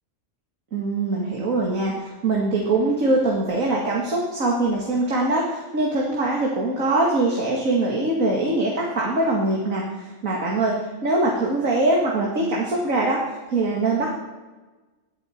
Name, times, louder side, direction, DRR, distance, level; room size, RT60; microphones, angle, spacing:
voice 1, 0.7-13.2 13.5-14.1, right 2 dB, 90° right, -2 dB, 2.5 m, -23 dB
21.0 x 12.0 x 4.5 m, 1.2 s
omnidirectional pair, 1.4 m